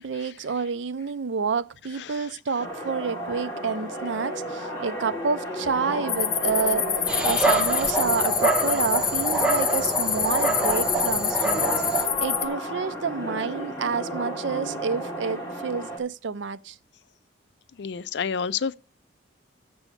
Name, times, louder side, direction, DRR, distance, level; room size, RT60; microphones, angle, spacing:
voice 1, 0.0-6.9 7.2-16.8, right 5 dB, 80° right, 0.5 m, -29 dB
sound 1, 2.6-16.0, right 1 dB, 15° left, 2.7 m, -32 dB
sound 2, 6.1-12.5, left 9 dB, 40° left, 0.8 m, -27 dB
Dog, 7.1-12.0, right 2 dB, 5° right, 1.0 m, -26 dB
voice 2, 17.8-18.7, left 6 dB, 65° left, 0.4 m, -28 dB
7.0 x 6.8 x 7.0 m
head